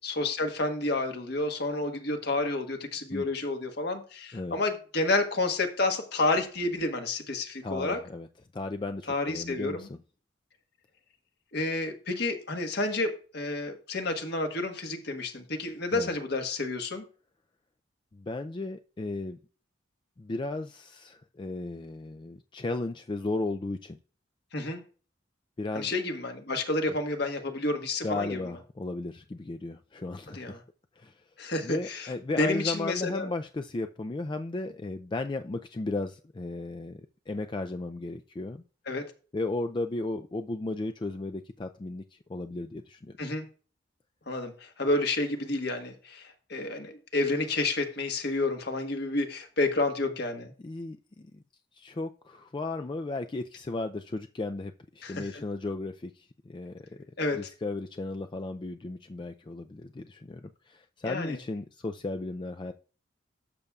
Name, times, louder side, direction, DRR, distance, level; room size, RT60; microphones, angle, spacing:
voice 1, 0.0-8.0 9.1-9.9 11.5-17.0 24.5-24.8 25.7-28.4 30.3-30.6 31.4-33.3 38.9-39.1 43.2-43.5 44.3-50.5 55.0-55.4 57.2-57.5 61.0-61.4, left 2 dB, 60° left, 1.4 m, -30 dB
voice 2, 7.6-8.3 8.5-10.0 15.9-16.1 18.1-19.4 20.2-24.0 25.6-25.9 28.0-30.6 31.0-31.1 31.6-38.6 39.3-42.0 42.3-43.1 50.6-51.4 51.7-57.1 57.3-62.7, left 2 dB, 25° left, 0.4 m, -35 dB
12.0 x 7.0 x 2.4 m
head